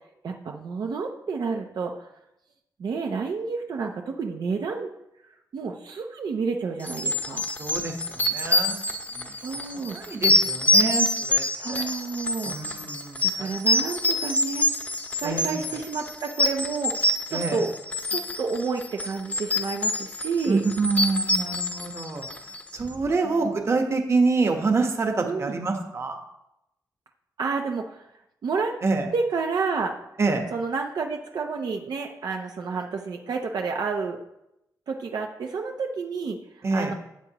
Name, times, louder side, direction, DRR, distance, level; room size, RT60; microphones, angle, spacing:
voice 1, 0.2-2.1 2.8-4.9 5.5-7.5 9.4-10.0 11.6-12.6 13.2-14.7 15.2-17.7 18.1-20.6 23.2-23.6 25.2-25.6 27.4-28.1 28.4-28.7 29.1-29.9 30.5-34.2 34.9-36.4 36.7-36.9, right 4 dB, 75° right, 2 dB, 0.8 m, -30 dB
sound 1, 6.8-22.7, left 1 dB, 20° left, 0.9 m, -26 dB
voice 2, 7.6-8.8 9.1-9.3 9.9-11.8 12.5-13.5 15.2-15.6 17.3-17.6 20.5-22.3 22.7-26.2 28.8-29.1 30.2-30.4 36.6-36.9, right 3 dB, 40° right, 4 dB, 1.3 m, -26 dB
13.0 x 8.5 x 3.0 m, 0.84 s
wide cardioid pair, 145°, 7 cm